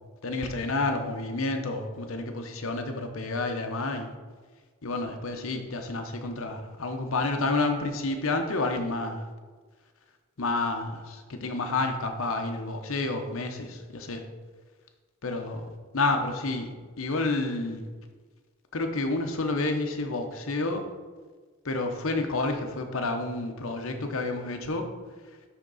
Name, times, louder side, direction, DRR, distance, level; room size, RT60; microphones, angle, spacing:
voice 1, 0.2-4.1 4.8-9.3 10.4-14.2 15.2-15.6 15.9-16.7 17.0-17.8 18.7-20.8 21.6-24.9, left 2 dB, 65° left, 5 dB, 0.8 m, -29 dB
10.5 x 3.6 x 4.0 m, 1.4 s
head